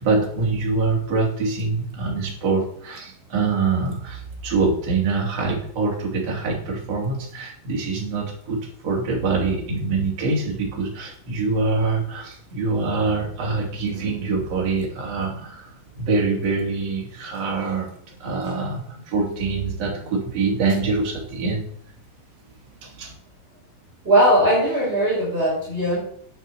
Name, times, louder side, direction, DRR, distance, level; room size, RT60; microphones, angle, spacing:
voice 1, 0.0-21.7 22.8-23.1, right 4 dB, 45° right, -2 dB, 4.0 m, -25 dB
voice 2, 24.1-26.0, right 1 dB, 15° right, -6 dB, 5.2 m, -19 dB
9.5 x 9.0 x 8.0 m, 0.63 s
omnidirectional pair, 4.0 m